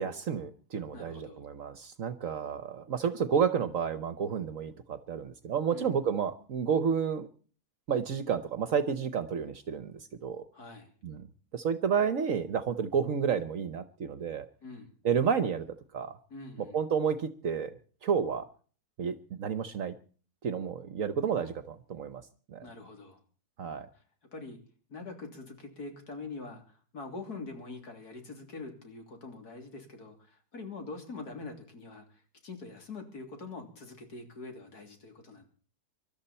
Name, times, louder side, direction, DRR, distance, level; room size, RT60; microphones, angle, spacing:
voice 1, 0.0-7.3 7.9-10.4 11.0-11.3 11.5-14.5 15.0-15.7 15.9-16.2 16.7-17.7 18.0-18.5 19.0-19.9 20.4-22.2 22.5-22.7 23.6-23.9, right 7 dB, 60° right, 13 dB, 1.2 m, -30 dB
voice 2, 0.9-1.4 5.7-6.0 10.5-10.9 14.6-14.9 16.3-16.8 22.6-23.2 23.9-24.0 24.3-24.6 24.9-35.5, left 3 dB, 80° left, 4 dB, 3.7 m, -44 dB
24.0 x 12.5 x 4.3 m, 0.42 s
omnidirectional pair, 1.7 m